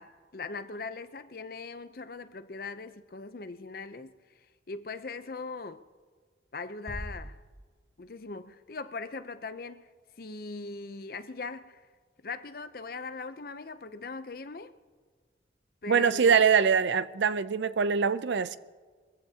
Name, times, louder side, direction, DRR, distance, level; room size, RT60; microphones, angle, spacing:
voice 1, 0.0-4.1 4.7-5.9 6.5-7.4 8.0-9.9 10.2-11.8 12.2-14.8 15.8-16.4, left 4 dB, 50° left, 0.6 m, -40 dB
sound 1, 6.9-8.4, equal, 35° right, 2.0 m, -43 dB
voice 2, 15.9-18.6, right 6 dB, 75° right, 0.5 m, -23 dB
22.5 x 15.0 x 2.8 m
head